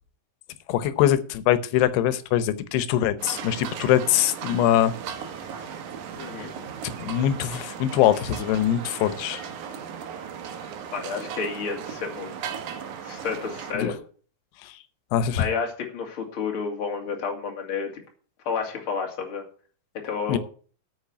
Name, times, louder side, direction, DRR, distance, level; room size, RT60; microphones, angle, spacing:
voice 1, 0.7-4.9 6.2-6.3 6.6-9.5 13.7-13.9 14.6-14.8 15.1-15.4 20.3-20.4, left 11 dB, 90° left, 3.0 m, -23 dB
sound 1, 3.2-13.7, right 7 dB, 65° right, 2.2 m, -37 dB
voice 2, 6.1-6.5 10.9-12.3 13.0-13.9 15.3-18.0 18.4-19.4 20.0-20.4, left 5 dB, 35° left, 2.8 m, -30 dB
9.0 x 6.4 x 8.3 m
omnidirectional pair, 4.6 m